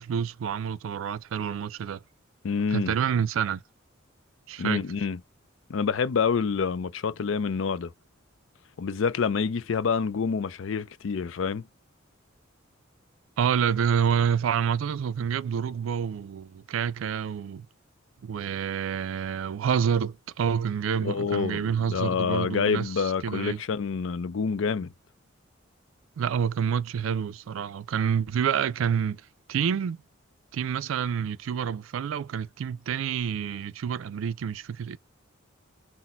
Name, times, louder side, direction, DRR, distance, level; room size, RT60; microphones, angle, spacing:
voice 1, 0.0-2.0 2.7-3.6 4.5-4.8 13.4-17.7 18.2-23.6 26.2-29.2 29.5-30.0 30.5-35.0, right 7 dB, 80° right, 0.4 m, -28 dB
voice 2, 2.4-2.9 4.6-5.2 5.7-7.9 8.8-11.6 21.0-24.9, left 5 dB, 70° left, 0.4 m, -27 dB
4.1 x 2.1 x 4.2 m
head